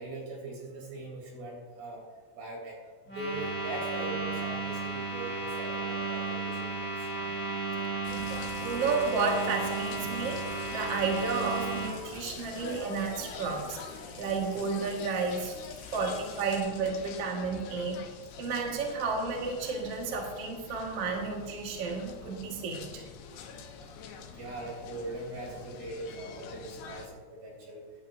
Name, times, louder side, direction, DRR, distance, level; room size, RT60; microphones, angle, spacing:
voice 1, 0.0-2.0 2.4-2.8 3.1-7.3 12.4-12.6 16.0-16.1 23.9-27.9, right 2 dB, 50° right, -2 dB, 4.8 m, -41 dB
sound 1, 3.1-11.9, right 3 dB, ahead, 3.3 m, -34 dB
Water tap faucet / Sink (filling or washing) / Trickle dribble, 8.0-16.6, left 4 dB, 60° left, 1.3 m, -52 dB
sound 2, 8.1-27.1, left 6 dB, 80° left, 2.3 m, -45 dB
voice 2, 8.1-10.4 10.7-13.8 14.2-15.5 15.9-16.1 16.4-18.0 18.4-23.0, right 4 dB, 80° right, 0 dB, 1.3 m, -32 dB
16.5 x 11.0 x 2.7 m, 1.4 s
omnidirectional pair, 5.8 m